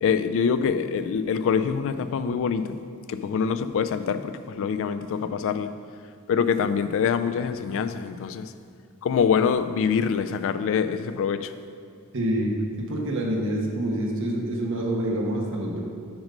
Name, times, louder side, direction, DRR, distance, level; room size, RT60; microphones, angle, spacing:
voice 1, 0.0-2.8 3.1-5.7 6.3-8.5 9.0-11.5, left 6 dB, 60° left, 11 dB, 0.3 m, -25 dB
voice 2, 12.1-15.8, right 1 dB, 60° right, -1 dB, 1.2 m, -27 dB
6.0 x 5.3 x 5.2 m, 2.3 s
head